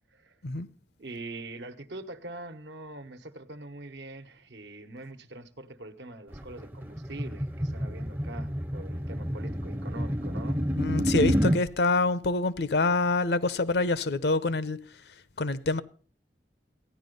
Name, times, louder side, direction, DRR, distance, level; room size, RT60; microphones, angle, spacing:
voice 1, 1.0-10.6, right 2 dB, 85° right, 1.2 m, -43 dB
sound 1, 6.3-11.6, equal, 10° right, 0.5 m, -29 dB
voice 2, 10.8-14.9 15.4-15.8, left 3 dB, 75° left, 0.7 m, -26 dB
15.0 x 10.0 x 5.3 m
head